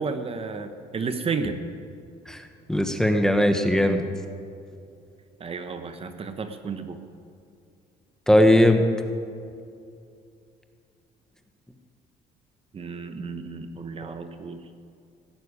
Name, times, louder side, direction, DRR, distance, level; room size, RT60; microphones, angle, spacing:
voice 1, 0.0-1.6 5.4-7.0 12.7-14.6, right 4 dB, 35° right, 8 dB, 1.0 m, -32 dB
voice 2, 2.7-4.1 8.3-8.8 14.0-14.1, left 1 dB, 5° left, 6 dB, 1.1 m, -19 dB
16.5 x 6.5 x 9.8 m, 2.4 s
cardioid pair, 110°, 17 cm